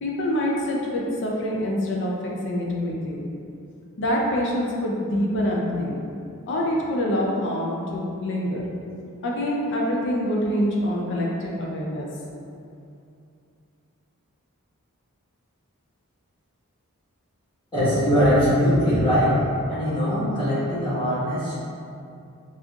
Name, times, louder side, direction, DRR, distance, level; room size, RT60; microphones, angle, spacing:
voice 1, 0.0-3.3 4.0-6.0 6.5-8.6 9.2-12.1, equal, 55° left, -3 dB, 0.5 m, -25 dB
voice 2, 17.7-19.4 19.7-21.6, equal, 20° left, -12 dB, 1.3 m, -21 dB
4.2 x 2.5 x 2.3 m, 2.5 s
head